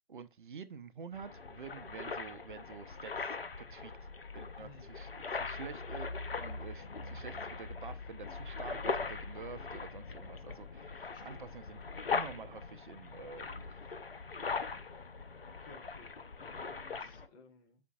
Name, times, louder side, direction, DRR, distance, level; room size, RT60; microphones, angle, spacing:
voice 1, 0.1-4.1 4.3-11.8 12.1-13.8, right 6 dB, 60° right, 0.6 m, -48 dB
sound 1, 1.1-17.3, left 4 dB, 75° left, 0.8 m, -41 dB
voice 2, 4.6-5.0 5.4-5.5 11.0-11.5 15.5-17.8, left 4 dB, 25° left, 0.9 m, -59 dB
8.1 x 5.1 x 2.4 m
figure-of-eight pair, 135°, 29 cm